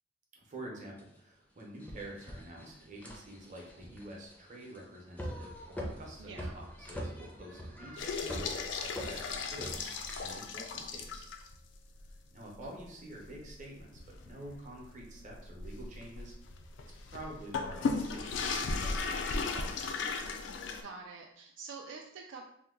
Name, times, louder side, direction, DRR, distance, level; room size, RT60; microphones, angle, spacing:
voice 1, 0.3-11.3 12.3-16.3 17.0-18.5 18.8-20.0, right 1 dB, 40° right, -1 dB, 0.7 m, -48 dB
sound 1, 1.0-1.1 1.6-10.2, equal, 10° left, 0.5 m, -44 dB
voice 2, 6.2-6.5 12.6-12.7 20.8-22.4, right 4 dB, 75° right, 1 dB, 0.3 m, -46 dB
sound 2, 8.0-11.6 12.0-12.1 12.6-12.7 13.2-20.8, left 4 dB, 70° left, 0.4 m, -36 dB
2.8 x 2.2 x 3.6 m, 0.74 s
head